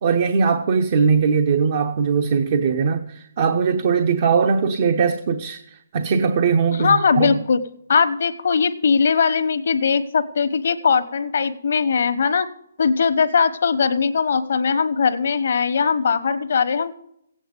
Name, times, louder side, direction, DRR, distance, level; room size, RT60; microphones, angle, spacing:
voice 1, 0.0-5.6 5.9-7.4, right 5 dB, 45° right, 0.8 m, -20 dB
voice 2, 6.7-7.6 7.9-12.5 12.8-16.9, left 5 dB, 65° left, 1.2 m, -20 dB
16.0 x 8.6 x 5.2 m
hypercardioid pair, 155°, 0 cm